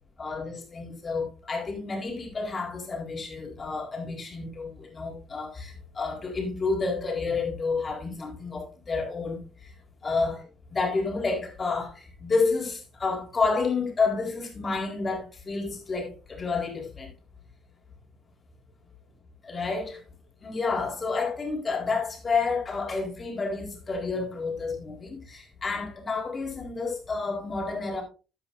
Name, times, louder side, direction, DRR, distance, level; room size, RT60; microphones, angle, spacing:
voice 1, 0.2-9.4 10.0-17.1 19.4-20.0 20.4-28.0, left 4 dB, 35° left, 3.9 m, -30 dB
13.5 x 8.9 x 2.6 m
hypercardioid pair, 55°, 0 cm